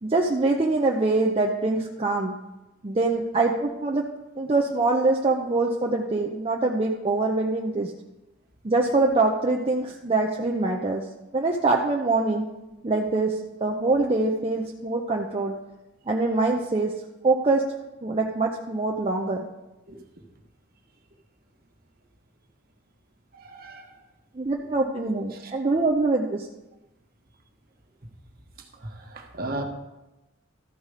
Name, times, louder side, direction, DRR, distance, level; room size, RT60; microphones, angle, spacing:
voice 1, 0.0-2.4 2.8-4.0 4.4-7.9 8.6-11.0 11.3-12.5 12.8-15.5 16.1-16.9 17.2-17.6 18.0-19.4 24.3-26.5, right 3 dB, 30° right, 0 dB, 0.6 m, -24 dB
voice 2, 23.3-23.9 25.4-25.5 28.8-29.6, right 2 dB, 50° right, 3 dB, 1.3 m, -35 dB
13.5 x 5.2 x 4.9 m, 0.99 s
head